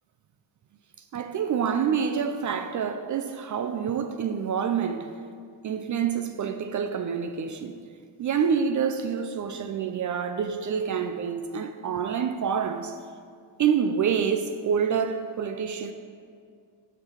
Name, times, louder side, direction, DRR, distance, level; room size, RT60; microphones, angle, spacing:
voice 1, 1.1-5.2 5.6-7.8 8.2-13.0 13.6-15.9, right 7 dB, 45° right, 0.4 m, -27 dB
8.3 x 5.6 x 4.5 m
cardioid pair, 95°, 46 cm